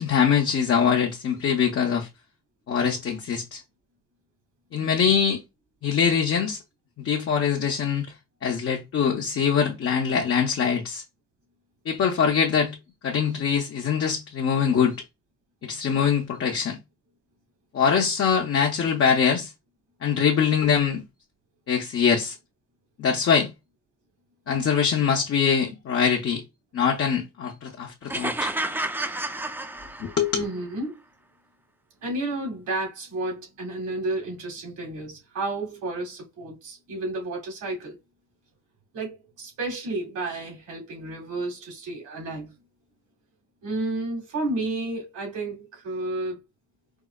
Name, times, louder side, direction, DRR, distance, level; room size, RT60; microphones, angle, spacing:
voice 1, 0.0-2.1 2.7-3.6 4.7-5.4 5.8-6.6 7.0-8.1 8.4-11.0 11.9-12.8 13.0-15.0 15.6-16.8 17.7-19.5 20.0-21.0 21.7-22.4 23.0-23.5 24.5-26.4 26.7-28.5 30.0-30.4, left 7 dB, 50° left, 0.7 m, -23 dB
sound 1, 28.1-30.4, right 1 dB, 5° right, 0.3 m, -30 dB
voice 2, 30.3-31.0 32.0-38.0 38.9-42.5 43.6-46.4, right 2 dB, 85° right, 2.0 m, -31 dB
4.7 x 2.1 x 2.3 m
cardioid pair, 90°, 30 cm